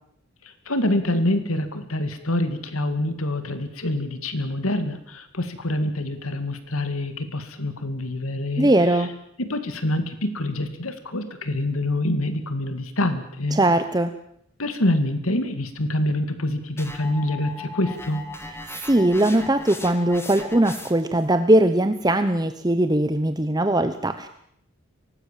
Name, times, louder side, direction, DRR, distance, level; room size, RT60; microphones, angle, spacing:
voice 1, 0.4-9.1 9.4-13.6 14.6-18.2, left 1 dB, 80° left, 9 dB, 2.3 m, -26 dB
voice 2, 8.6-9.1 13.5-14.1 18.8-24.3, right 1 dB, 20° right, 9 dB, 0.9 m, -20 dB
sound 1, 16.8-21.2, left 3 dB, 10° left, 2.2 m, -38 dB
24.0 x 19.0 x 7.5 m, 0.72 s
head